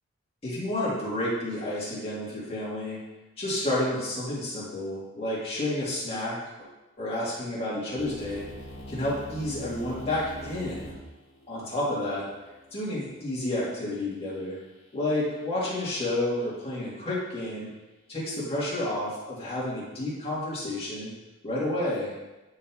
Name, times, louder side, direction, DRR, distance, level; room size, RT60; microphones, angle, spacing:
voice 1, 0.4-3.0 3.4-6.7 7.0-8.4 8.9-10.9 11.5-12.2 12.7-14.6 14.9-17.7 18.1-21.1 21.4-22.1, left 1 dB, 25° left, -8 dB, 2.1 m, -30 dB
sound 1, 8.0-13.9, equal, 80° left, 1.6 m, -44 dB
10.0 x 3.8 x 3.0 m, 1.1 s
head